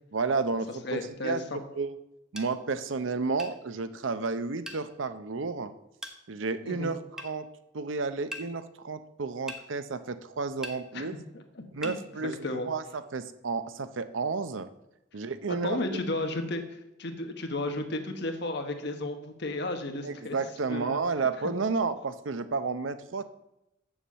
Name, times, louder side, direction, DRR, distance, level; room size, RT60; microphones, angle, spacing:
voice 1, 0.1-1.4 1.8-1.9 2.3-5.7 6.3-7.5 7.7-11.1 11.7-12.3 12.6-12.8 13.1-14.7 15.1-15.8 20.0-23.2, right 4 dB, 75° right, 12 dB, 0.6 m, -31 dB
voice 2, 0.8-1.6 6.6-6.9 10.9-11.1 11.3-11.9 12.2-12.7 15.5-20.4 20.7-21.0, left 2 dB, 60° left, 5 dB, 1.2 m, -34 dB
sound 1, 2.4-2.5 3.4-3.6 4.7-4.8 6.0-6.2 7.2-7.3 8.3-8.5 9.5-9.6 10.6-10.8 11.8-12.0, equal, 5° right, 0.9 m, -39 dB
7.2 x 7.0 x 7.4 m, 0.87 s
head